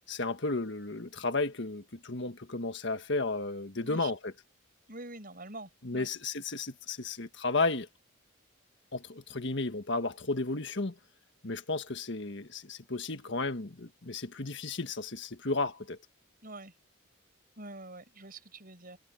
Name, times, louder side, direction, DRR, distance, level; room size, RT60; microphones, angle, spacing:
voice 1, 0.1-4.3 5.8-7.9 8.9-10.9 11.4-16.0, left 3 dB, 60° left, 1.6 m, -33 dB
voice 2, 4.9-6.1 16.4-16.7 17.6-19.0, right 2 dB, 45° right, 7.0 m, -45 dB
head